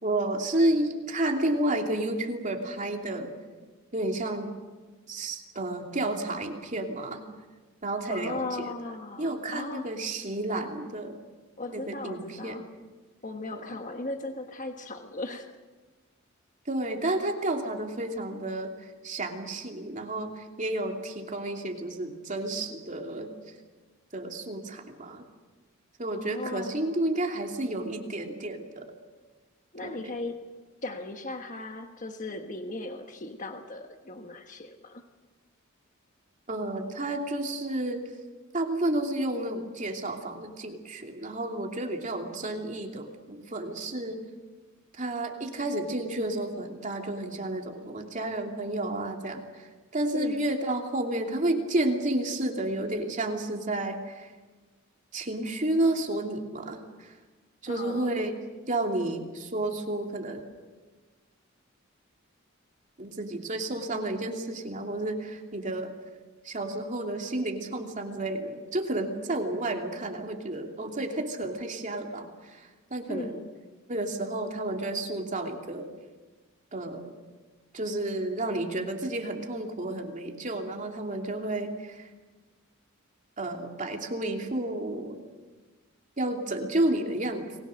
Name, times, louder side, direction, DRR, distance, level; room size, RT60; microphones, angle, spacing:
voice 1, 0.0-3.3 3.9-4.5 5.1-7.2 7.8-8.7 9.2-11.2 11.7-12.6 13.5-13.8 16.6-23.5 24.1-25.3 26.0-28.9 29.8-30.1 36.5-38.0 38.5-44.2 44.9-54.3 55.1-57.2 57.6-58.4 58.7-60.4 63.0-65.9 66.4-73.4 73.9-75.9 76.7-77.1 77.7-82.1 83.4-85.2 86.2-87.5, right 1 dB, 35° right, 2 dB, 2.8 m, -31 dB
voice 2, 8.1-9.9 11.6-12.6 13.2-15.5 26.1-27.0 29.7-30.5 30.8-35.0 50.1-50.4 57.7-58.3 73.1-73.5, left 2 dB, 40° left, 5 dB, 1.4 m, -37 dB
30.0 x 21.0 x 6.5 m, 1.3 s
head